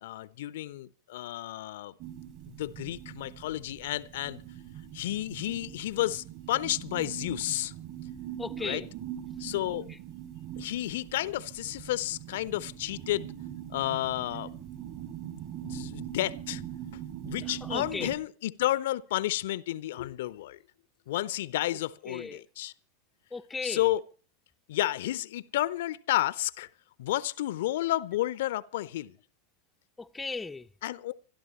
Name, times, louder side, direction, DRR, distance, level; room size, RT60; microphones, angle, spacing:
voice 1, 0.0-1.9 2.5-4.4 4.9-7.7 8.6-8.8 9.4-9.9 10.6-13.3 13.7-14.5 15.3-16.6 16.9-20.6 21.1-22.7 23.6-24.0 24.7-26.7 27.0-29.2 30.8-31.1, left 15 dB, 55° left, 0.6 m, -31 dB
sound 1, 2.0-18.2, right 11 dB, 40° right, 2.8 m, -42 dB
voice 2, 8.4-8.9 17.7-18.1 22.1-22.4 23.3-23.8 30.0-30.7, left 3 dB, 10° left, 0.6 m, -36 dB
25.5 x 12.5 x 3.1 m
figure-of-eight pair, 90°, 0 cm